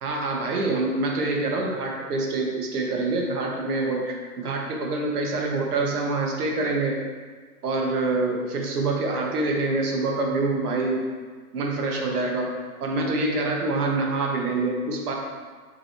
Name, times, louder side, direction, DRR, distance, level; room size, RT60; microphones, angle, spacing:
voice 1, 0.0-7.0 7.6-11.0 11.5-12.5 12.8-15.1, right 2 dB, 80° right, 0 dB, 1.1 m, -26 dB
5.3 x 3.1 x 2.9 m, 1.6 s
hypercardioid pair, 130°, 45 cm